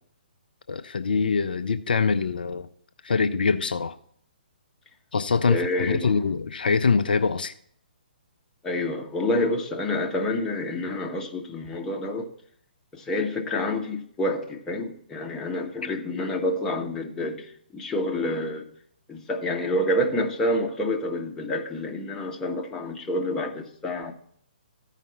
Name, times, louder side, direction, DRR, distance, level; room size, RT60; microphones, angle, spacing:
voice 1, 0.7-2.7 3.0-3.9 5.1-7.5, left 5 dB, 65° left, 0.5 m, -24 dB
voice 2, 5.5-6.2 8.6-12.3 12.9-18.7 19.1-24.1, left 1 dB, 10° left, 1.1 m, -28 dB
14.0 x 5.0 x 4.2 m
figure-of-eight pair, 130°, 5 cm